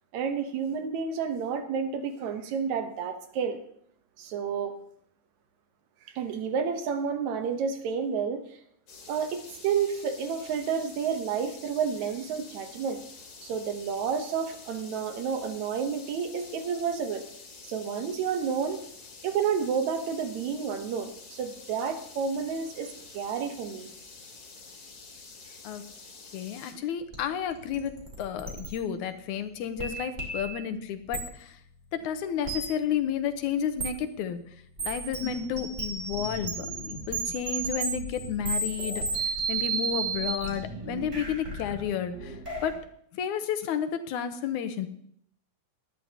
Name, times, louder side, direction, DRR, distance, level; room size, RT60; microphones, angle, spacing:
voice 1, 0.1-3.6 4.2-4.7 6.2-8.4 9.1-13.0 13.4-17.2 17.6-18.8 19.2-23.9, right 6 dB, 75° right, 7 dB, 2.3 m, -30 dB
sound 1, 8.9-26.7, left 4 dB, 55° left, 3.0 m, -48 dB
voice 2, 26.3-31.6 31.9-34.4 34.8-42.9 43.1-44.9, left 8 dB, 85° left, 9 dB, 2.3 m, -32 dB
sound 2, 27.1-27.2 27.5-28.7 29.8-30.6 31.1-31.2 32.4-32.6 33.8-33.9 34.8-42.8, right 3 dB, 25° right, 2.6 m, -33 dB
18.5 x 11.0 x 2.9 m, 0.67 s
omnidirectional pair, 3.4 m